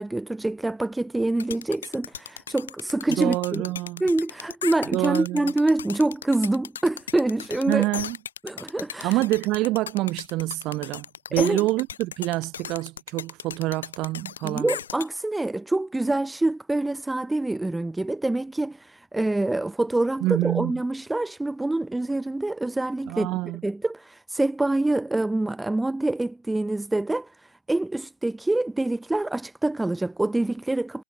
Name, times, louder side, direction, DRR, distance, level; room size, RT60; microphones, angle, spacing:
voice 1, 0.0-3.6 4.0-7.8 8.4-9.2 11.4-11.6 14.4-31.0, right 2 dB, 5° right, 1.1 m, -26 dB
sound 1, 1.4-15.1, left 8 dB, 90° left, 6.3 m, -36 dB
voice 2, 3.1-4.0 4.9-5.5 7.7-8.2 9.0-11.1 11.3-14.7 20.2-20.7 23.1-23.6, right 19 dB, 40° right, 2.1 m, -26 dB
hypercardioid pair, 135°, 0 cm